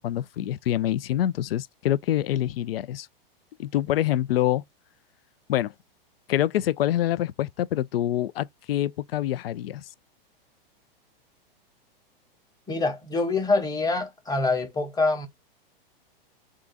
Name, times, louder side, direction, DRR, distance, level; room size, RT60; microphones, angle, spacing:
voice 1, 0.0-3.1 3.6-4.6 5.5-5.7 6.3-9.9, left 12 dB, 80° left, 0.5 m, -26 dB
voice 2, 12.7-15.3, left 3 dB, 15° left, 0.8 m, -25 dB
3.8 x 2.4 x 3.8 m
hypercardioid pair, 125°, 29 cm